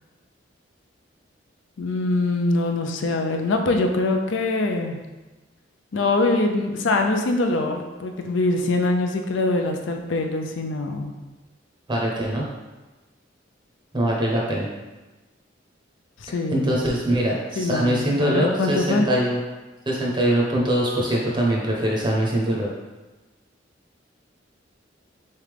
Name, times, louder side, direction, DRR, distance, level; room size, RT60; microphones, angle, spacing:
voice 1, 1.8-5.0 5.9-11.2 16.2-16.8 17.6-19.1, left 2 dB, 80° left, 4 dB, 0.5 m, -23 dB
voice 2, 11.9-12.5 13.9-14.7 16.5-19.4 19.9-22.7, right 1 dB, 25° right, -3 dB, 0.6 m, -22 dB
3.7 x 3.3 x 3.4 m, 1.2 s
head